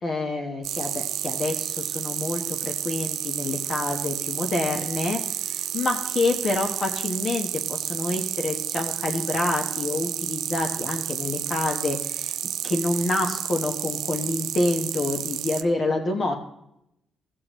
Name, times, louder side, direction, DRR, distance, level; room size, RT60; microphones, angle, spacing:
voice 1, 0.0-12.4 12.6-16.4, left 2 dB, 45° left, 2 dB, 1.2 m, -27 dB
sound 1, 0.6-15.6, right 11 dB, 80° right, 0.5 m, -30 dB
15.5 x 8.3 x 3.1 m, 0.81 s
cardioid pair, 100°, 0 cm